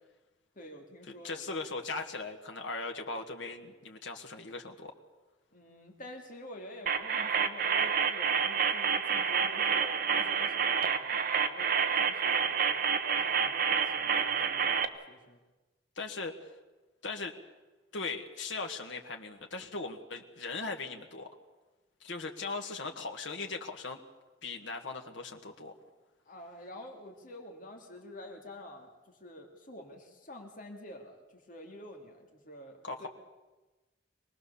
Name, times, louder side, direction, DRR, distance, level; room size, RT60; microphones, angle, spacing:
voice 1, 0.6-1.6 5.5-15.4 26.3-33.1, left 1 dB, 45° left, 2 dB, 2.8 m, -49 dB
voice 2, 1.2-4.9 16.0-16.4 17.0-17.3 17.9-21.3 22.0-24.0 24.4-25.7 32.8-33.1, left 3 dB, 85° left, 3 dB, 1.6 m, -39 dB
sound 1, 6.9-14.9, right 6 dB, 50° right, 1.0 m, -28 dB
25.0 x 19.0 x 7.0 m, 1.2 s
head